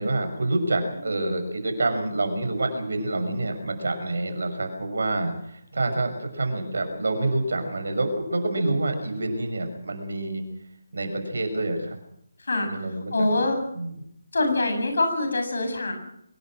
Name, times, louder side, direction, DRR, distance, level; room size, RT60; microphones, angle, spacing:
voice 1, 0.0-10.4 10.9-12.0 12.6-13.3 13.7-13.9, right 2 dB, 60° right, 6 dB, 6.3 m, -27 dB
voice 2, 13.1-13.6 14.3-15.9, left 2 dB, 60° left, 5 dB, 7.9 m, -24 dB
24.0 x 20.5 x 6.2 m, 0.74 s
figure-of-eight pair, 150°, 0 cm